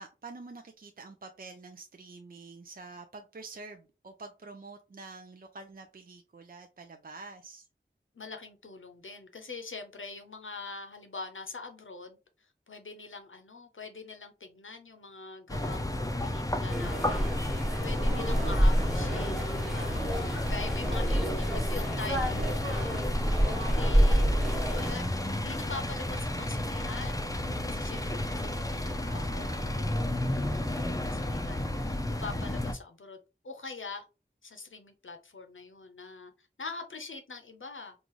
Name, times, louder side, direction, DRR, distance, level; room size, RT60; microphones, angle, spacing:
voice 1, 0.0-7.7 17.6-18.6 28.9-29.6, right 3 dB, 45° right, 0.4 m, -47 dB
voice 2, 8.1-23.0 23.3-24.3 24.6-27.3 27.7-33.2 33.4-34.0 34.4-37.9, left 4 dB, 80° left, 0.7 m, -44 dB
sound 1, 15.5-32.7, left 1 dB, 15° left, 0.5 m, -32 dB
sound 2, 16.7-24.9, equal, ahead, 1.2 m, -28 dB
3.8 x 2.4 x 3.0 m
wide cardioid pair, 40°, 20 cm